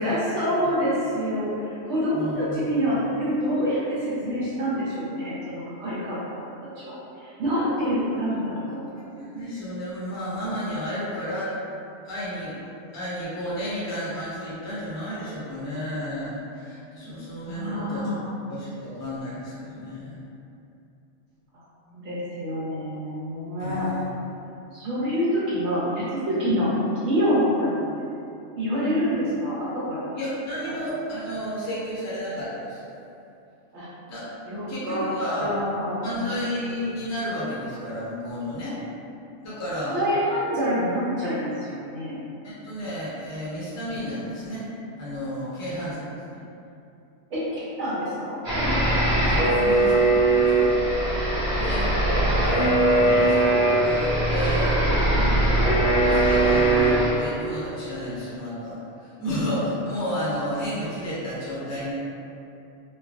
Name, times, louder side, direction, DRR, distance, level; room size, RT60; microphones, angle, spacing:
voice 1, 0.0-6.2 6.8-6.9 7.2-8.9 17.5-18.3 21.9-23.9 24.7-26.7 27.1-27.9 28.6-30.1 30.6-30.8 33.7-33.9 34.5-35.1 35.4-36.4 39.9-42.2 47.3-47.4 47.8-48.4 53.0-53.3 55.1-55.5, equal, 65° right, -9 dB, 0.9 m, -26 dB
voice 2, 2.1-2.8 8.7-8.8 9.2-11.5 12.0-12.5 12.9-18.1 18.5-20.3 23.6-24.1 30.1-32.9 34.1-34.3 34.7-35.5 36.0-38.8 39.4-40.0 42.4-44.7 45.0-46.4 49.2-50.8 51.4-51.9 52.4-54.7 56.0-61.9, equal, 25° left, -9 dB, 0.4 m, -32 dB
sound 1, 48.4-57.1, right 1 dB, 40° right, 1.0 m, -20 dB
3.1 x 2.2 x 2.4 m, 2.7 s
omnidirectional pair, 1.4 m